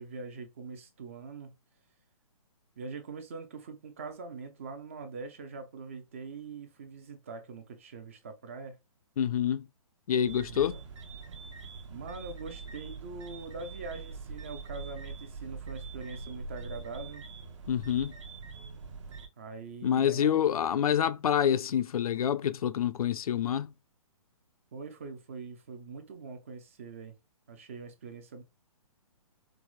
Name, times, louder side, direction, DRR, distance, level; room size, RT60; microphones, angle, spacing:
voice 1, 0.0-1.5 2.8-8.8 10.5-10.8 11.9-17.3 19.4-20.4 24.7-27.1 27.5-28.4, right 4 dB, 20° right, 0.3 m, -43 dB
voice 2, 9.2-9.7 10.1-10.8 17.7-18.2 19.8-23.7, left 9 dB, 70° left, 0.4 m, -27 dB
sound 1, 10.2-19.3, right 4 dB, 55° right, 0.7 m, -43 dB
4.6 x 2.0 x 2.3 m
hypercardioid pair, 165°, 19 cm